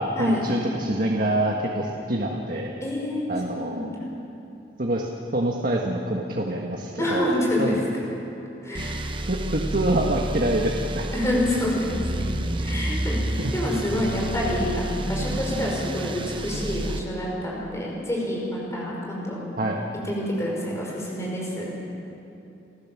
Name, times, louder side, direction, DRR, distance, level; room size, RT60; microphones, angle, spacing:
voice 1, 0.0-2.7 3.3-3.9 4.8-7.9 9.3-11.1 13.4-13.5 19.6-19.8, right 1 dB, 55° right, 0 dB, 1.6 m, -26 dB
voice 2, 2.8-4.0 7.0-7.7 8.6-9.0 11.1-12.3 12.6-19.4 20.0-21.7, left 1 dB, 15° left, -3 dB, 5.5 m, -27 dB
sound 1, 8.7-17.0, right 1 dB, 30° right, 0.9 m, -30 dB
29.5 x 14.5 x 7.5 m, 2.8 s
head